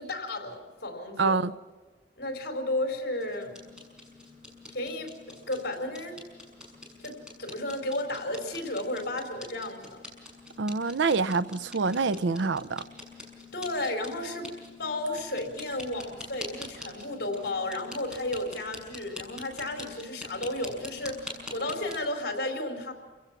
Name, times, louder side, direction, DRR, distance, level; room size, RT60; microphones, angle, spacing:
voice 1, 0.0-1.4 2.2-3.5 4.7-5.1 5.5-6.2 7.0-10.0 13.5-14.5 14.8-22.9, left 1 dB, 60° left, 4.4 m, -33 dB
voice 2, 1.2-1.5 10.6-12.8, right 4 dB, 90° right, 0.6 m, -26 dB
sound 1, 3.1-21.9, left 2 dB, 5° right, 6.7 m, -46 dB
28.0 x 17.0 x 6.0 m
head